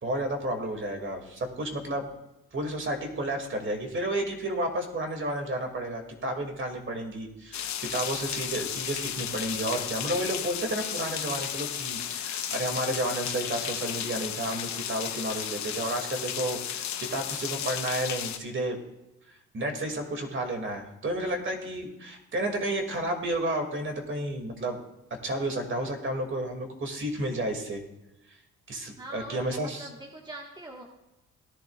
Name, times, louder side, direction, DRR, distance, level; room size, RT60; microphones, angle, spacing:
voice 1, 0.0-2.1 2.5-18.8 19.5-24.8 25.2-27.8 28.7-29.9, right 1 dB, 40° right, 3 dB, 2.3 m, -31 dB
sound 1, 7.5-18.4, left 10 dB, 65° left, 0.9 m, -34 dB
voice 2, 29.0-30.9, right 1 dB, 15° right, 0 dB, 1.5 m, -43 dB
17.5 x 10.5 x 2.4 m, 0.92 s
cardioid pair, 90°, 30 cm